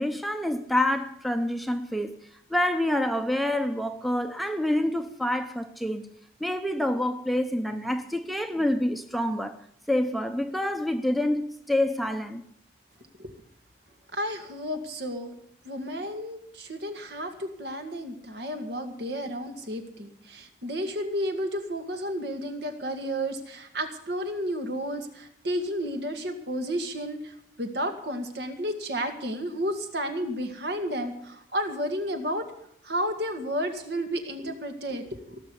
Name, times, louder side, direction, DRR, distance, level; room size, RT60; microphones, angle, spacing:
voice 1, 0.0-2.1 2.5-6.1 6.4-9.6 9.9-12.4, left 1 dB, ahead, 0.7 m, -27 dB
voice 2, 14.1-15.3 15.6-32.5 32.8-35.4, equal, 70° right, 2.1 m, -32 dB
18.0 x 6.8 x 9.9 m
head